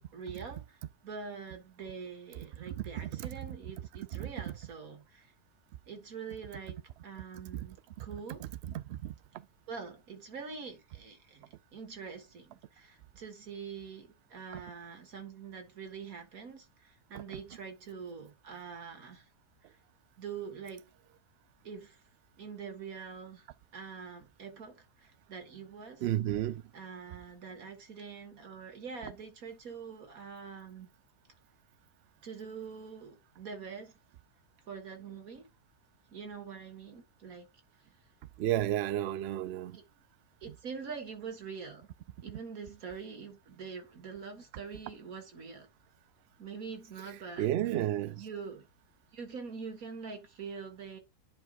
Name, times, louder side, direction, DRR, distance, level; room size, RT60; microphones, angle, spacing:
voice 1, 0.1-5.3 5.9-6.8 7.0-8.5 9.7-19.3 20.2-20.9 21.6-22.0 22.4-23.5 23.7-26.0 26.7-30.9 32.2-33.9 34.7-35.5 36.1-37.5 39.7-39.8 40.4-41.9 42.2-45.7 46.4-47.5 48.2-48.7 49.1-51.0, right 5 dB, 65° right, 2.1 m, -44 dB
voice 2, 2.7-3.3 4.2-4.5 7.5-7.7 8.0-8.1 8.4-9.1 14.5-14.6 17.1-17.2 26.0-26.6 38.4-39.8 47.4-48.2, right 13 dB, 85° right, 0.5 m, -33 dB
10.5 x 4.6 x 2.4 m
omnidirectional pair, 1.6 m